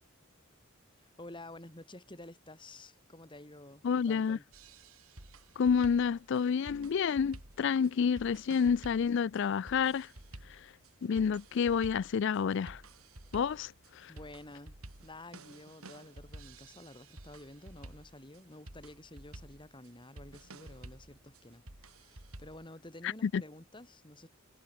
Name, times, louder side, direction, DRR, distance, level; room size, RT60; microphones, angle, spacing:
voice 1, 1.0-4.5 14.1-14.7 15.0-24.3, left 1 dB, 20° left, 2.4 m, -51 dB
voice 2, 3.8-4.4 5.6-10.1 11.0-12.8 13.3-13.7 14.0-14.1 23.0-23.4, left 6 dB, 55° left, 0.3 m, -29 dB
sound 1, 4.5-22.7, right 2 dB, 80° right, 3.7 m, -52 dB
head